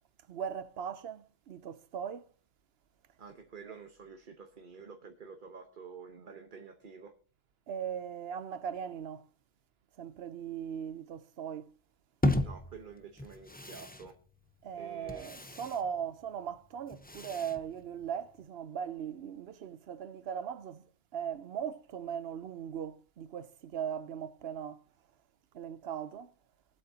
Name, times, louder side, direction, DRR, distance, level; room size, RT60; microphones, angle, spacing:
voice 1, 0.3-2.3 3.7-3.8 7.7-9.3 10.0-11.7 14.6-20.8 21.1-24.8 25.5-26.3, right 8 dB, 75° right, 0.9 m, -39 dB
voice 2, 3.2-7.1 12.4-14.2 14.7-15.3, right 5 dB, 55° right, 1.2 m, -49 dB
sound 1, 12.2-18.4, left 1 dB, 10° left, 0.7 m, -37 dB
22.5 x 8.2 x 2.7 m
omnidirectional pair, 1.1 m